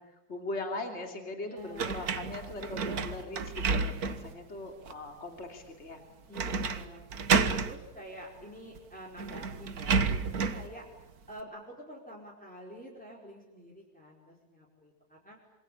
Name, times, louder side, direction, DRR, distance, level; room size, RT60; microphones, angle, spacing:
voice 1, 0.0-6.0, left 2 dB, 45° left, 4 dB, 3.3 m, -40 dB
voice 2, 1.4-1.9 6.3-7.3 7.7-10.2 10.5-10.9 11.3-15.4, equal, 5° left, -3 dB, 4.9 m, -47 dB
sound 1, 1.8-4.3 4.9-5.0 6.4-6.8 7.1-7.7 8.8-8.9 9.2-10.7, right 5 dB, 75° right, 1.9 m, -30 dB
27.5 x 24.0 x 8.7 m, 1.0 s
omnidirectional pair, 1.6 m